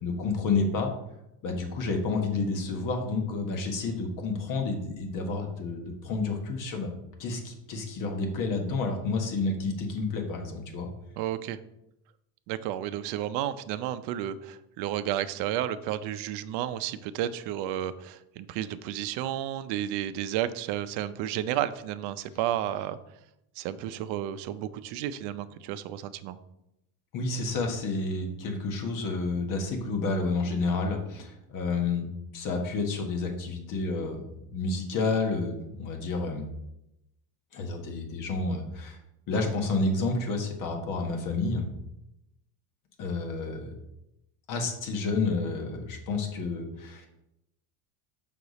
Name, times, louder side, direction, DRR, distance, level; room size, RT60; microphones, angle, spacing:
voice 1, 0.0-0.9 1.4-6.9 7.2-10.9 27.1-32.1 32.3-36.5 37.5-39.0 39.3-41.6 43.0-43.7 44.5-47.1, left 3 dB, 45° left, 3 dB, 1.4 m, -30 dB
voice 2, 11.2-11.6 12.5-23.0 23.6-26.4, right 11 dB, 65° right, 12 dB, 0.6 m, -32 dB
6.6 x 5.9 x 4.1 m, 0.86 s
cardioid pair, 160°, 44 cm